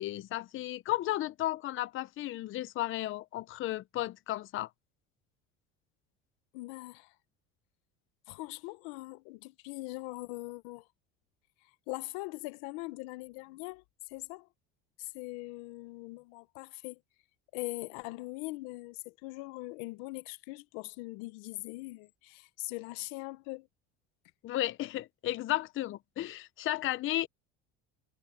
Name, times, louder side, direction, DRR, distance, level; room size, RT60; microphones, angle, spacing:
voice 1, 0.0-4.7 24.4-27.3, left 15 dB, 45° left, 0.7 m, -34 dB
voice 2, 6.5-7.1 8.3-10.9 11.9-14.5 15.0-17.0 17.5-23.7, left 23 dB, 85° left, 1.0 m, -41 dB
cardioid pair, 125°, 30 cm